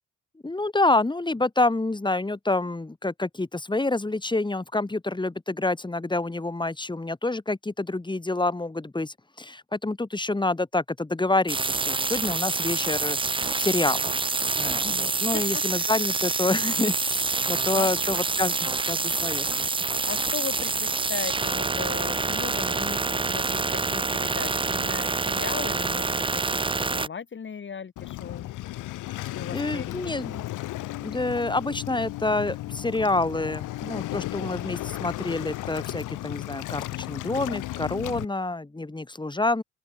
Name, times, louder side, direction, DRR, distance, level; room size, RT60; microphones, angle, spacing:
voice 1, 0.4-14.2 14.6-19.7 29.1-29.2 29.5-30.5 31.0-39.6, left 2 dB, 15° left, 4.8 m, -28 dB
sound 1, 11.5-27.1, right 4 dB, 15° right, 0.8 m, -27 dB
voice 2, 14.8-15.9 17.7-18.0 20.1-28.5 29.3-30.3, left 6 dB, 40° left, 2.4 m, -37 dB
Waves surf, 28.0-38.2, left 16 dB, 90° left, 1.5 m, -34 dB
open air
cardioid pair, 90°, 30 cm